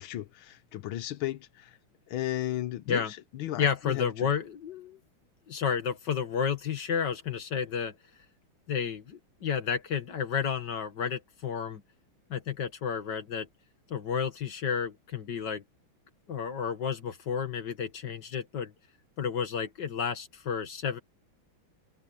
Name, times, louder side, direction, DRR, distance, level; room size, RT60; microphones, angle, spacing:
voice 1, 0.0-1.8 2.1-4.3, left 14 dB, 85° left, 1.6 m, -35 dB
voice 2, 3.6-5.0 5.5-8.0 8.7-11.8 12.3-13.5 13.9-15.6 16.3-18.7 19.2-21.0, left 7 dB, 55° left, 2.3 m, -31 dB
omnidirectional pair, 2.3 m